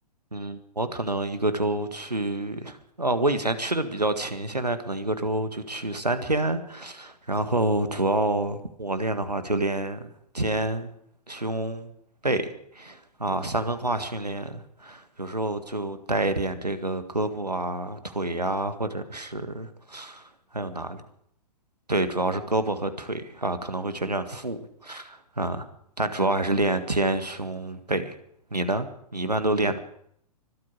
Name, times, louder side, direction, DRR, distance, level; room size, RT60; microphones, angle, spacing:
voice 1, 0.3-10.9 11.3-11.9 12.2-20.3 20.5-21.0 21.9-25.7 26.0-28.2 28.5-29.8, right 2 dB, 85° right, 1.7 m, -28 dB
25.0 x 8.7 x 6.3 m
figure-of-eight pair, 115°, 20 cm